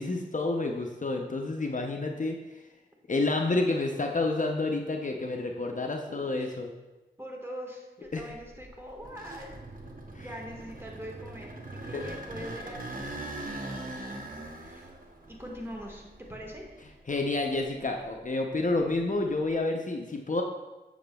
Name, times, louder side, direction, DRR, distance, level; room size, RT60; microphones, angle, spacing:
voice 1, 0.0-2.4 3.1-6.7 8.1-8.2 10.1-10.3 11.9-12.0 17.1-20.4, left 2 dB, 45° left, 2 dB, 0.6 m, -29 dB
voice 2, 6.1-6.6 7.2-9.6 10.2-14.3 14.6-14.9 15.3-16.9, equal, 15° right, -1 dB, 1.4 m, -43 dB
sound 1, 8.1-17.1 17.6-19.5, right 2 dB, 50° right, 0.9 m, -42 dB
7.0 x 6.7 x 2.2 m, 1.1 s
cardioid pair, 40°, 18 cm